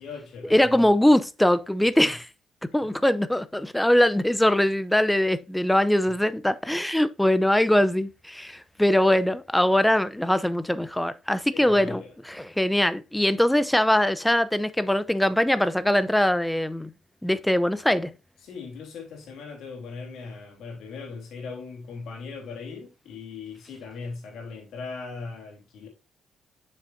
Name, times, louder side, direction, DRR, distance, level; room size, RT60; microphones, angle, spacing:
voice 1, 0.0-0.8 2.0-2.2 2.8-2.9 11.5-12.1 18.4-25.9, left 4 dB, 75° left, 3.1 m, -39 dB
voice 2, 0.5-2.2 2.7-12.0 12.3-16.9 17.2-18.1, left 1 dB, 5° left, 0.6 m, -22 dB
7.2 x 6.4 x 2.6 m
cardioid pair, 90°, 0 cm